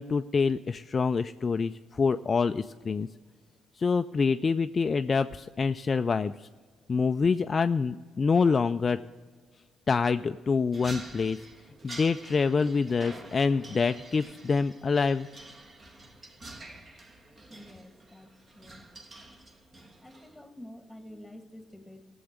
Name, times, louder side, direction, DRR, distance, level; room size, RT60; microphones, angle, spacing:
voice 1, 0.0-3.1 3.8-6.5 6.9-9.0 9.9-11.5 11.8-15.3, left 5 dB, 40° left, 9 dB, 0.3 m, -26 dB
sound 1, 10.7-20.4, right 2 dB, 40° right, 1.5 m, -48 dB
voice 2, 17.5-18.9 20.0-22.0, left 1 dB, 5° left, 7 dB, 1.6 m, -49 dB
15.0 x 7.0 x 6.5 m, 1.5 s
supercardioid pair, 75°, 0 cm